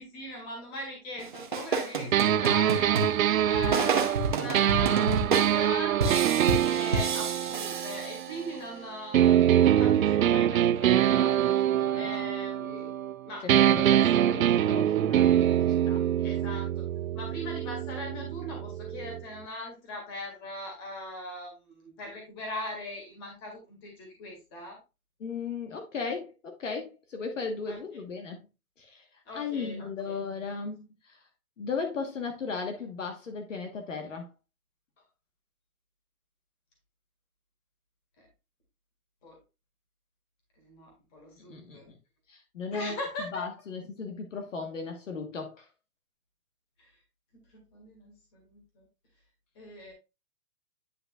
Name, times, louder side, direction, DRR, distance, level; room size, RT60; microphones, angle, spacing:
voice 1, 0.0-12.9 13.2-13.5 13.9-14.2 16.2-16.8 17.1-24.8 27.7-27.8 29.3-30.2 38.2-38.3 39.2-39.4 40.6-41.9 42.7-43.4 46.8-47.0 47.3-48.9 49.6-49.9, left 1 dB, 15° left, 2.0 m, -40 dB
sound 1, 1.2-8.6, right 4 dB, 35° right, 0.8 m, -30 dB
sound 2, 2.1-8.7 9.1-13.2 13.5-19.2, right 11 dB, 65° right, 0.5 m, -24 dB
voice 2, 12.6-12.9 13.4-15.4 15.9-16.0 25.2-28.4 28.8-29.0 29.3-31.2 31.6-34.3 41.4-42.0 42.3-42.9 43.3-45.6, left 5 dB, 55° left, 1.4 m, -36 dB
9.8 x 5.3 x 2.3 m
hypercardioid pair, 180°, 46 cm